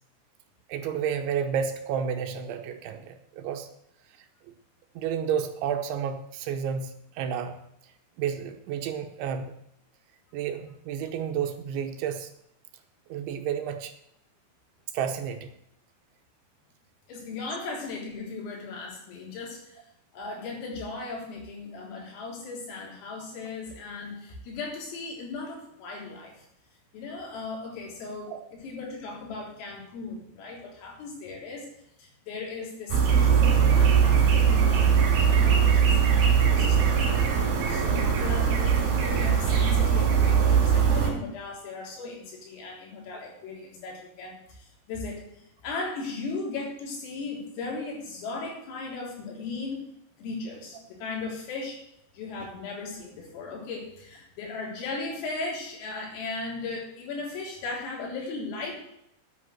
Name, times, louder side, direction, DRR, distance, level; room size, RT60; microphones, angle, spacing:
voice 1, 0.7-3.7 5.0-7.6 8.2-9.5 10.3-12.3 13.1-13.9 14.9-15.5 28.3-28.4, right 8 dB, 75° right, 6 dB, 2.9 m, -31 dB
voice 2, 17.1-19.8 20.1-26.5 26.9-31.7 32.0-37.2 37.7-45.2 45.6-49.8 50.2-51.8 52.1-58.7, left 3 dB, 75° left, -2 dB, 6.3 m, -37 dB
sound 1, 32.9-41.1, right 7 dB, 55° right, 5.0 m, -21 dB
9.9 x 9.5 x 7.7 m, 0.77 s
omnidirectional pair, 6.0 m